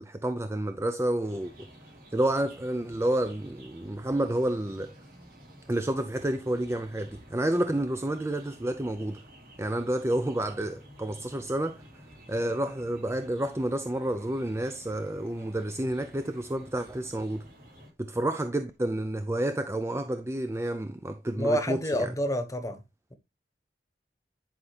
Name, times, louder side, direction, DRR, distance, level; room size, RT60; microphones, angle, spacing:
voice 1, 0.0-1.7 2.1-4.9 5.7-9.2 9.6-11.8 12.3-17.5 18.0-22.1, right 1 dB, 15° right, 0.5 m, -30 dB
sound 1, 1.2-17.9, right 1 dB, 55° right, 3.4 m, -52 dB
voice 2, 21.4-22.8, equal, 20° left, 1.1 m, -28 dB
10.5 x 5.4 x 3.3 m
head